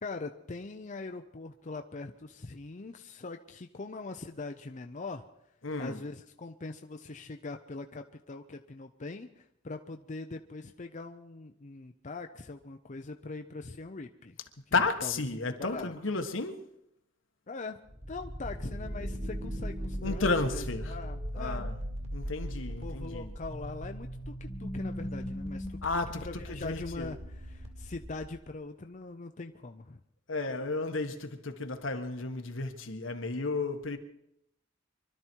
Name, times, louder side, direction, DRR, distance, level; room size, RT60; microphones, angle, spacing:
voice 1, 0.0-5.2 5.8-14.4 14.7-15.1 15.6-15.9 17.5-17.8 18.1-21.7 22.8-25.8 26.2-30.0, left 3 dB, 40° left, 0.7 m, -42 dB
voice 2, 5.6-6.0 14.7-16.6 20.0-20.9 21.4-21.7 22.1-23.3 25.8-27.1 30.3-34.0, left 3 dB, 80° left, 1.5 m, -33 dB
sound 1, 17.9-28.5, equal, 35° right, 2.3 m, -38 dB
24.5 x 12.5 x 4.6 m
head